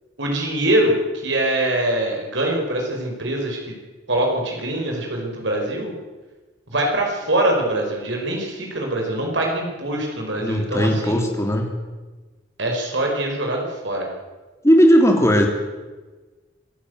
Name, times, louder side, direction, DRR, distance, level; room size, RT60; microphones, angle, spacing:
voice 1, 0.2-3.7 4.1-5.9 6.7-11.3 12.6-14.1, right 1 dB, 75° right, 1 dB, 5.0 m, -23 dB
voice 2, 10.4-11.7 14.6-15.5, equal, 15° left, 2 dB, 3.1 m, -16 dB
26.0 x 13.5 x 8.0 m, 1.3 s
head